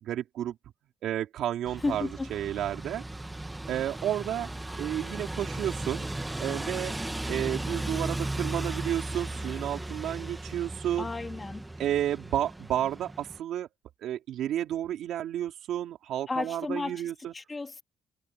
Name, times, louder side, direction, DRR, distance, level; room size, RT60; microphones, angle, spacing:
voice 1, 0.0-0.6 1.0-3.0 3.7-4.5 4.8-6.1 6.4-6.9 7.3-11.1 11.8-13.7 14.0-17.3, right 11 dB, 80° right, 4.1 m, -31 dB
sound 1, 1.7-13.4, right 2 dB, 10° right, 2.0 m, -36 dB
voice 2, 1.8-2.3 11.0-11.7 16.3-17.8, left 3 dB, 25° left, 2.8 m, -33 dB
cardioid pair, 90°, 0 cm